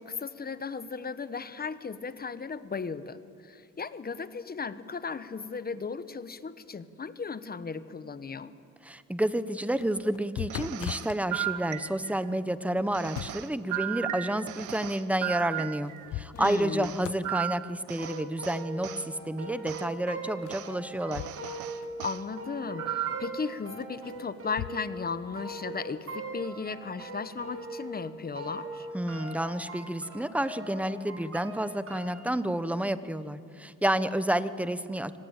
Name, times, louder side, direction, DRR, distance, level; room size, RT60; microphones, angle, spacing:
voice 1, 0.0-8.5 16.3-16.9 22.0-28.9, left 5 dB, 30° left, 13 dB, 1.1 m, -36 dB
voice 2, 8.8-21.2 28.9-35.2, right 1 dB, 5° right, 13 dB, 1.1 m, -30 dB
sound 1, 9.8-11.2 12.8-13.6 15.4-15.5 15.9-16.7 17.0-17.4 20.4-21.6 21.8-21.9 23.8-24.8, left 16 dB, 80° left, 0.5 m, -40 dB
sound 2, 10.5-12.3 12.9-16.1 16.4-19.0 19.7-19.9 20.5-20.7 21.1-22.2 22.8-23.4, right 14 dB, 80° right, 0.9 m, -36 dB
sound 3, 18.0-28.1 28.4-32.2, right 2 dB, 50° right, 7.4 m, -41 dB
25.0 x 18.5 x 9.0 m, 2.3 s
cardioid pair, 90°, 30 cm